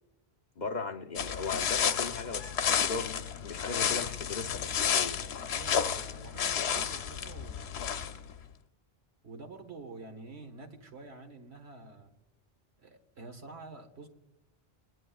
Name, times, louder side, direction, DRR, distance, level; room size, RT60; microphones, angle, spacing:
voice 1, 0.6-3.1 3.4-5.3, left 4 dB, 50° left, 6 dB, 0.8 m, -38 dB
sound 1, 1.2-8.3, left 8 dB, 85° left, 0.9 m, -31 dB
voice 2, 5.5-8.3 9.2-12.1 12.8-14.1, right 3 dB, 80° right, 5 dB, 1.7 m, -48 dB
20.0 x 10.5 x 2.3 m, 1.0 s
omnidirectional pair, 1.1 m